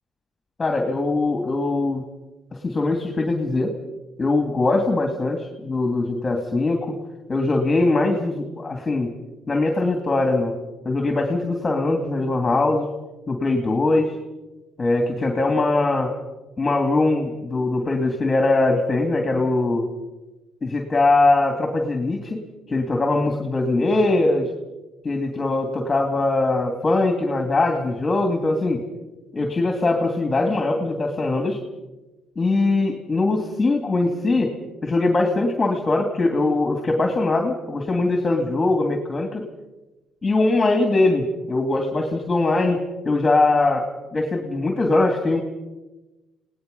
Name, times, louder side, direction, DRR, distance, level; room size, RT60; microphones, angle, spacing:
voice 1, 0.6-2.0 2.5-3.7 4.2-6.9 7.3-9.1 9.5-10.5 10.8-12.9 13.3-14.1 14.8-16.1 16.6-19.9 20.6-22.4 22.7-24.5 25.0-28.8 29.3-31.6 32.4-34.5 34.8-39.4 40.2-43.9 44.1-45.4, left 2 dB, 25° left, 4 dB, 2.7 m, -21 dB
29.0 x 18.5 x 5.5 m, 1.1 s
cardioid pair, 100°, 0 cm